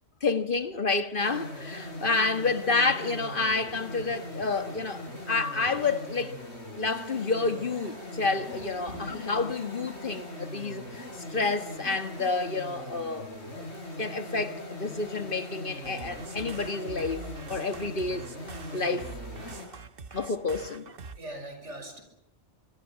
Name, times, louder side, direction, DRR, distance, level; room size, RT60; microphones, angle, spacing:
voice 1, 0.2-6.3 6.7-11.0 11.3-13.6 14.0-18.3 18.7-19.1 20.1-20.9, left 3 dB, 50° left, 1.6 m, -29 dB
sound 1, 1.2-19.7, left 1 dB, 70° left, 6.8 m, -41 dB
voice 2, 8.5-9.2 21.1-22.0, right 1 dB, 90° right, 5.9 m, -42 dB
sound 2, 15.8-21.2, right 5 dB, 55° right, 1.3 m, -44 dB
25.0 x 24.5 x 7.5 m
omnidirectional pair, 1.2 m